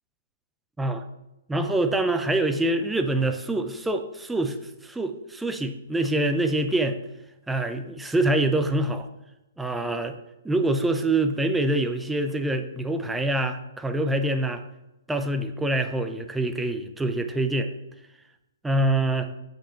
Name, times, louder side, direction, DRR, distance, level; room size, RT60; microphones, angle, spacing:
voice 1, 1.5-4.6 4.8-7.0 7.5-9.1 9.6-10.2 10.4-14.6 15.1-17.7 18.6-19.3, right 2 dB, 5° right, 8 dB, 0.6 m, -25 dB
8.5 x 7.7 x 3.0 m, 0.93 s
figure-of-eight pair, 120°, 0 cm